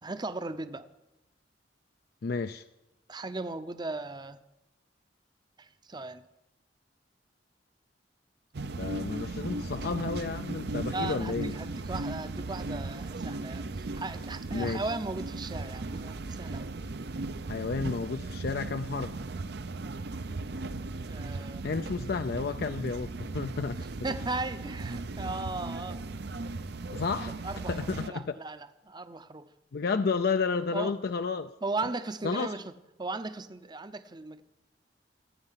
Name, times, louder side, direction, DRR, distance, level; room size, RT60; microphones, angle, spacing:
voice 1, 0.0-0.9 3.1-4.4 5.6-6.2 10.9-16.7 21.1-21.6 24.0-26.0 27.4-29.5 30.7-30.9 31.6-34.4, right 2 dB, 25° right, 13 dB, 0.7 m, -37 dB
voice 2, 2.2-2.6 8.8-11.5 14.5-14.9 17.5-19.1 21.6-23.8 26.9-27.4 27.7-28.3 29.7-31.5 32.2-32.5, left 4 dB, 55° left, 9 dB, 0.4 m, -31 dB
sound 1, 8.5-28.1, right 3 dB, 60° right, 0.6 m, -37 dB
26.5 x 9.0 x 5.7 m, 0.95 s
head